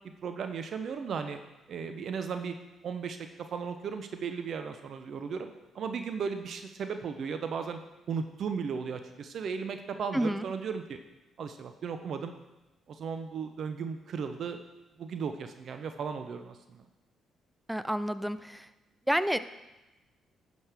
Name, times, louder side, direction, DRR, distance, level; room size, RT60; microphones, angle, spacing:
voice 1, 0.2-1.4 1.7-2.5 2.8-7.8 8.1-11.0 11.4-12.3 12.9-14.6 15.0-16.8, right 6 dB, 60° right, 7 dB, 0.6 m, -36 dB
voice 2, 10.1-10.5 17.7-18.7 19.1-19.4, equal, 5° right, 13 dB, 0.5 m, -29 dB
11.0 x 6.2 x 3.5 m, 1.0 s
hypercardioid pair, 50°, 0 cm